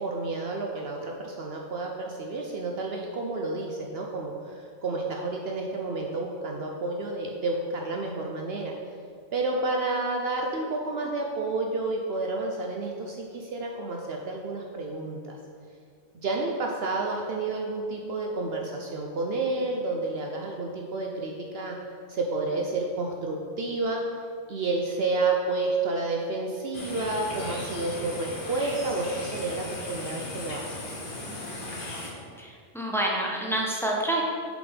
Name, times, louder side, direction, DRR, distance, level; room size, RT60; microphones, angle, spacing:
voice 1, 0.0-8.7 9.3-15.4 16.1-21.8 22.1-24.0 24.5-30.8, right 3 dB, 60° right, 0 dB, 0.9 m, -30 dB
sound 1, 26.7-32.1, left 1 dB, 50° left, 1.2 m, -37 dB
voice 2, 32.4-34.2, right 1 dB, ahead, -3 dB, 0.9 m, -28 dB
7.1 x 5.2 x 5.1 m, 2.1 s
omnidirectional pair, 1.2 m